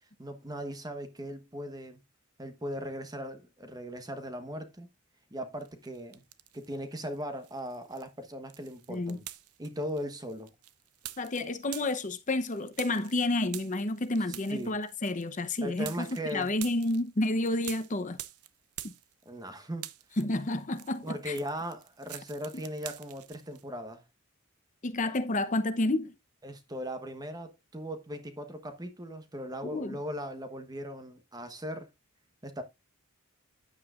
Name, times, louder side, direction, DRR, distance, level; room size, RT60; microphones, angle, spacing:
voice 1, 0.2-2.0 2.4-4.9 5.3-6.2 6.5-9.3 9.6-10.5 14.5-14.8 15.6-16.5 19.2-19.9 21.0-24.0 26.4-31.9 32.4-32.6, equal, 15° right, 1.1 m, -38 dB
sound 1, 5.6-6.8 7.1-19.5 19.7-23.6, right 13 dB, 85° right, 0.8 m, -47 dB
voice 2, 8.9-9.2 11.2-16.1 16.3-18.2 18.8-18.9 20.2-21.4 24.8-26.1 29.6-30.0, left 2 dB, 35° left, 0.8 m, -30 dB
10.0 x 8.6 x 2.5 m
head